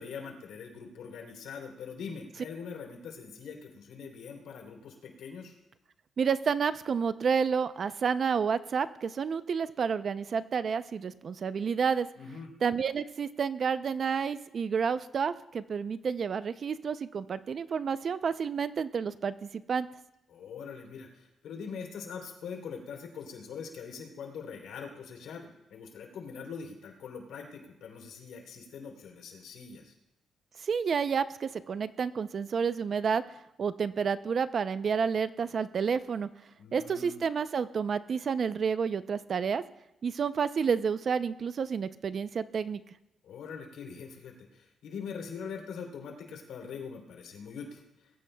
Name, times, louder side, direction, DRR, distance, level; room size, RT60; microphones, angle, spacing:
voice 1, 0.0-5.6 12.2-12.5 20.3-29.9 36.6-37.2 43.2-48.1, left 6 dB, 90° left, 2 dB, 3.3 m, -43 dB
voice 2, 6.2-12.1 12.6-19.9 30.6-33.2 33.6-36.3 36.7-39.6 40.0-42.8, right 6 dB, 45° right, 13 dB, 0.5 m, -30 dB
21.0 x 15.0 x 2.3 m, 0.96 s
cardioid pair, 130°, 0 cm